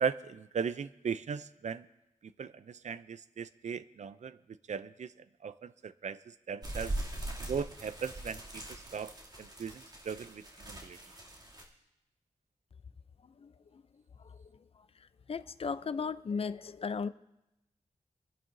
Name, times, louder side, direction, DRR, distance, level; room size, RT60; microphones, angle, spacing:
voice 1, 0.0-1.9 2.4-4.4 4.7-5.1 5.4-6.9 7.5-9.1 9.4-11.0, right 6 dB, 70° right, 15 dB, 0.5 m, -37 dB
sound 1, 6.6-11.6, right 1 dB, 35° right, 2.7 m, -41 dB
voice 2, 13.4-13.8 14.2-14.4 15.3-17.1, left 5 dB, 50° left, 14 dB, 0.5 m, -36 dB
26.5 x 11.0 x 2.6 m, 0.92 s
wide cardioid pair, 100°, 12 cm